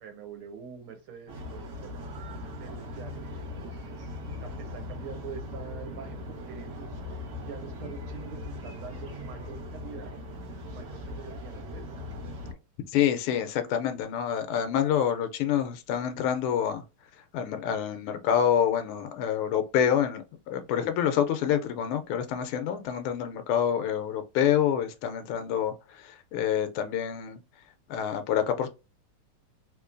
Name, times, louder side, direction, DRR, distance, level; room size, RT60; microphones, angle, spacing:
voice 1, 0.0-2.0 2.6-4.1 4.4-7.2 7.5-10.1 10.6-11.9, right 6 dB, 75° right, 1.7 m, -45 dB
sound 1, 1.3-12.5, left 2 dB, 55° right, 1.7 m, -39 dB
voice 2, 12.9-16.8 17.3-27.4 27.9-28.7, left 9 dB, 80° left, 1.4 m, -27 dB
3.7 x 2.9 x 2.4 m
omnidirectional pair, 2.4 m